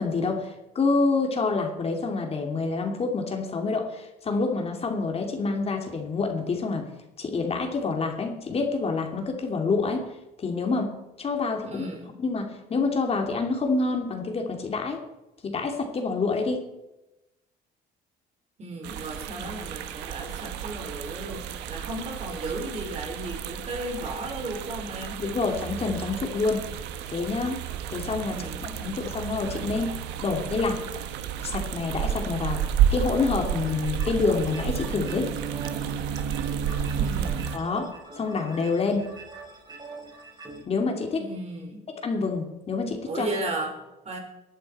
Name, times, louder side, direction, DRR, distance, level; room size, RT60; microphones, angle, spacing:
voice 1, 0.0-6.9 7.2-10.0 10.4-10.9 11.2-11.9 12.2-15.0 15.4-16.6 19.3-19.5 25.2-26.6 27.1-27.6 27.9-28.4 28.8-29.9 30.2-30.8 31.4-32.6 32.9-35.3 37.5-37.8 38.2-39.0 40.7-41.2 42.0-43.3, left 4 dB, 35° left, 3 dB, 2.8 m, -27 dB
voice 2, 11.6-12.1 18.6-25.2 28.3-28.9 36.9-37.5 41.2-41.8 43.1-44.2, right 2 dB, 40° right, 2 dB, 4.5 m, -35 dB
sound 1, 18.8-37.6, right 9 dB, 90° right, 1.3 m, -31 dB
sound 2, 33.4-40.6, right 3 dB, 25° right, 4.3 m, -43 dB
19.5 x 11.0 x 4.4 m, 0.96 s
cardioid pair, 110°, 17 cm